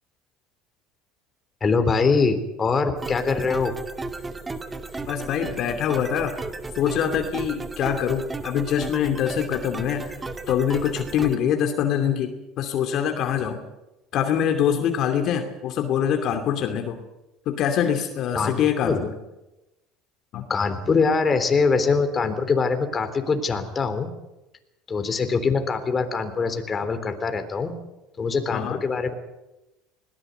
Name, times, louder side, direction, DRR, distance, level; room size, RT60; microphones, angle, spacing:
voice 1, 1.6-3.7 18.3-19.0 20.5-24.1 24.9-27.7 28.2-29.1, left 4 dB, 30° left, 7 dB, 3.5 m, -23 dB
sound 1, 3.0-11.4, right 3 dB, 20° right, 2.0 m, -34 dB
voice 2, 5.1-6.4 6.8-10.2 10.5-13.6 14.1-17.0 17.5-19.1 20.3-20.5 28.5-28.8, left 9 dB, 55° left, 5 dB, 2.7 m, -24 dB
21.0 x 18.5 x 8.0 m, 0.97 s
supercardioid pair, 95°, 0 cm